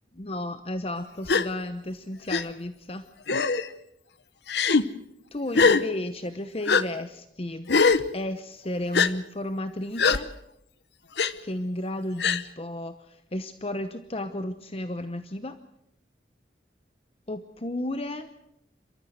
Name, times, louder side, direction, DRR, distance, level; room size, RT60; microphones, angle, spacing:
voice 1, 0.1-3.0 5.3-7.7 8.1-10.3 11.4-15.6 17.3-18.3, left 1 dB, 35° left, 9 dB, 0.9 m, -33 dB
Gasp, 1.3-1.5 2.3-2.4 3.3-3.7 4.5-4.8 5.5-5.8 6.7-6.8 7.7-8.0 8.9-9.1 10.0-10.2 11.2-11.3 12.2-12.4, left 4 dB, 70° left, 1.0 m, -21 dB
29.0 x 13.5 x 7.9 m, 0.79 s
head